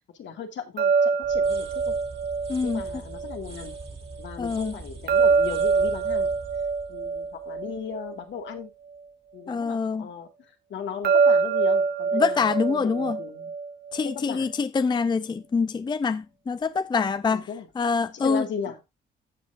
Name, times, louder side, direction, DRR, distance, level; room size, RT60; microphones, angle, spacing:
voice 1, 0.1-2.0 2.6-3.7 4.2-6.3 6.9-8.7 9.3-10.3 10.7-13.5 14.1-14.5 17.3-17.7 18.1-18.8, left 6 dB, 70° left, 2.0 m, -36 dB
sound 1, 0.8-3.8 5.1-8.6 11.0-14.1, right 5 dB, 55° right, 0.8 m, -24 dB
sound 2, 1.2-8.1, right 3 dB, 30° right, 2.1 m, -43 dB
voice 2, 2.5-2.8 4.4-4.8 9.5-10.1 12.1-13.2 13.9-17.5 17.8-18.4, left 5 dB, 20° left, 0.5 m, -25 dB
15.5 x 5.7 x 2.5 m
cardioid pair, 90°, 20 cm